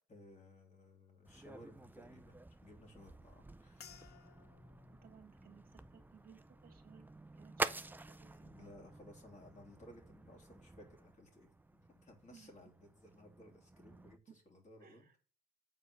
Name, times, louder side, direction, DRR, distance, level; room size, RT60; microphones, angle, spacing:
voice 1, 0.1-4.3 8.3-15.2, left 1 dB, 35° left, 1 dB, 3.1 m, -59 dB
sound 1, 1.3-14.2, right 2 dB, 10° right, 0.5 m, -48 dB
sound 2, 3.8-8.3 8.7-9.3 9.9-10.1, left 6 dB, 55° left, 0.8 m, -63 dB
voice 2, 5.0-8.8 12.3-12.5 14.3-14.4 14.8-15.2, right 7 dB, 45° right, 5 dB, 1.8 m, -62 dB
7.4 x 4.6 x 6.4 m, 0.37 s
cardioid pair, 90°, 20 cm